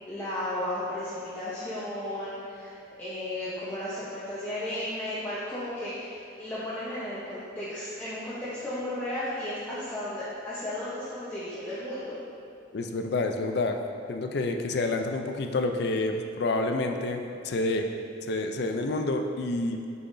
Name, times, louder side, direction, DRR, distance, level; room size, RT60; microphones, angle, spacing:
voice 1, 0.1-12.2, left 1 dB, 10° left, -12 dB, 0.9 m, -34 dB
voice 2, 12.7-13.8 14.1-17.9 18.3-19.8, left 2 dB, 60° left, 5 dB, 0.4 m, -28 dB
6.7 x 5.7 x 2.6 m, 2.6 s
head